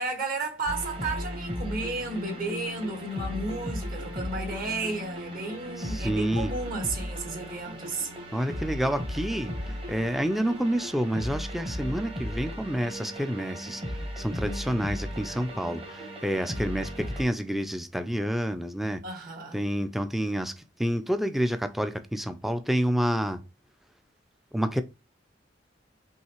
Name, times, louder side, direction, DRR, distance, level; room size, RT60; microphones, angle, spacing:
voice 1, 0.0-8.1 14.3-15.4 19.0-19.6, right 2 dB, 50° right, 1.6 m, -33 dB
sound 1, 0.7-17.2, equal, 30° right, 1.2 m, -36 dB
voice 2, 5.8-6.5 8.3-13.8 14.2-19.0 19.5-23.4 24.5-24.8, equal, ahead, 0.3 m, -29 dB
5.5 x 3.2 x 3.0 m
head